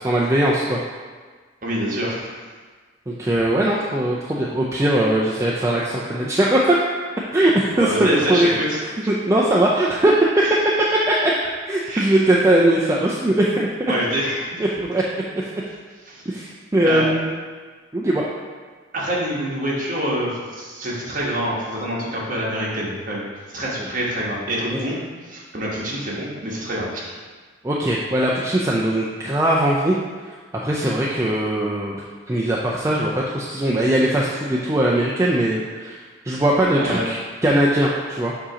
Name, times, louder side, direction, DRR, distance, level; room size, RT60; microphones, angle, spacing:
voice 1, 0.0-0.8 3.1-6.8 7.3-8.6 9.1-10.2 10.9-11.3 11.7-13.9 14.6-15.4 16.3-17.3 17.9-18.2 24.7-24.9 27.6-30.0 30.3-30.4 30.6-32.0 32.3-38.3, right 1 dB, 15° right, -5 dB, 0.4 m, -20 dB
voice 2, 1.6-2.3 7.7-8.8 10.4-10.5 11.8-12.2 13.9-14.6 16.1-16.3 16.8-17.1 18.9-23.3 23.5-25.0 25.3-27.0 36.7-37.1, equal, 40° right, -5 dB, 1.3 m, -26 dB
7.3 x 2.8 x 5.0 m, 1.5 s
head